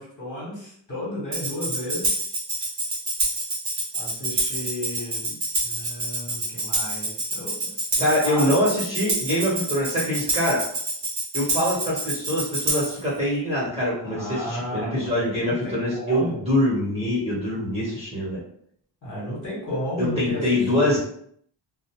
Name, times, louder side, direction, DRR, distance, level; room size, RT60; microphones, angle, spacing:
voice 1, 0.0-2.1 3.9-8.5 14.0-16.4 19.0-21.0, equal, 40° left, -6 dB, 1.2 m, -33 dB
Tambourine, 1.3-13.0, right 2 dB, 35° right, 0.8 m, -27 dB
voice 2, 8.0-10.6 11.3-18.4 20.0-21.0, left 1 dB, 15° right, -7 dB, 1.0 m, -24 dB
2.5 x 2.0 x 2.9 m, 0.65 s
wide cardioid pair, 150°, 46 cm